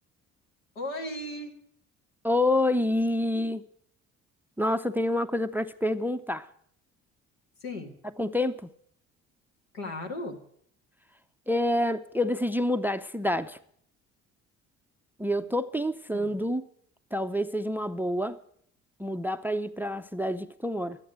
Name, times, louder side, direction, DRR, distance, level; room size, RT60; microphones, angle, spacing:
voice 1, 0.8-1.5 7.6-8.0 9.7-10.4 16.1-16.4, left 1 dB, 80° left, 1.9 m, -36 dB
voice 2, 2.2-3.6 4.6-6.5 8.2-8.7 11.5-13.6 15.2-16.6 17.1-18.4 19.0-21.0, left 1 dB, 5° right, 0.5 m, -27 dB
12.5 x 8.6 x 9.4 m
figure-of-eight pair, 50°, 39 cm